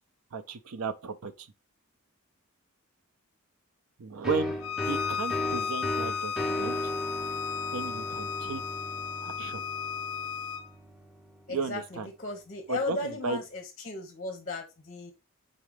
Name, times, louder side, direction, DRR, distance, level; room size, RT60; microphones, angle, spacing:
voice 1, 0.3-1.5 4.0-4.6 4.9-6.8 7.7-8.6 9.2-9.6 11.5-12.1 12.7-13.4, right 4 dB, 90° right, 0.5 m, -34 dB
sound 1, 4.2-11.7, left 1 dB, ahead, 0.7 m, -36 dB
Bowed string instrument, 4.6-10.7, left 7 dB, 75° left, 0.4 m, -34 dB
voice 2, 11.5-15.1, left 2 dB, 40° left, 0.7 m, -36 dB
4.0 x 3.7 x 3.2 m
head